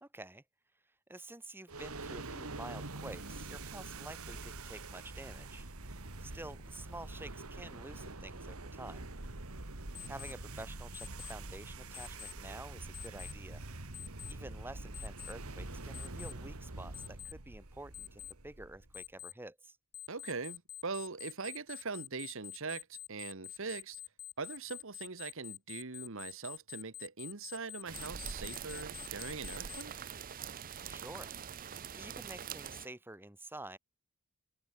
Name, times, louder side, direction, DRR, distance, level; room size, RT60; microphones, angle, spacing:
voice 1, 0.0-0.4 1.1-5.6 6.2-9.1 10.1-13.6 14.3-19.8 30.9-31.3 31.9-33.8, right 2 dB, 10° right, 1.3 m, -49 dB
sound 1, 1.7-19.1, right 2 dB, 85° right, 2.4 m, -45 dB
Alarm, 9.9-10.3 10.9-11.3 11.9-12.3 12.9-13.3 13.9-14.3 14.9-15.3 15.9-16.3 16.9-17.3 17.9-18.3 18.9-19.3 19.9-29.8, left 14 dB, 50° left, 2.6 m, -46 dB
voice 2, 20.1-24.0 24.4-30.1, right 4 dB, 65° right, 1.4 m, -42 dB
sound 2, 27.9-32.9, right 7 dB, 40° right, 0.6 m, -44 dB
head